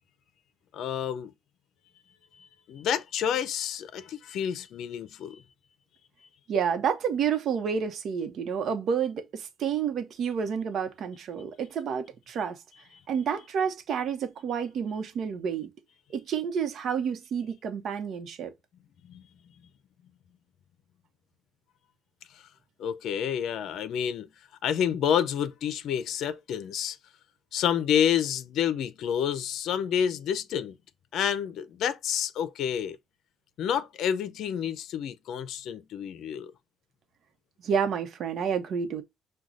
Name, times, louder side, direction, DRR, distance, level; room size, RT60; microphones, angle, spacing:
voice 1, 0.7-1.3 2.4-5.4 19.1-19.2 22.8-24.3 24.6-27.0 27.5-30.8 31.1-33.0 33.6-36.5, left 9 dB, 80° left, 0.5 m, -29 dB
voice 2, 6.5-12.6 13.1-15.7 16.1-18.5 37.6-39.0, right 7 dB, 70° right, 0.9 m, -29 dB
6.1 x 2.3 x 3.8 m
cardioid pair, 90°, 0 cm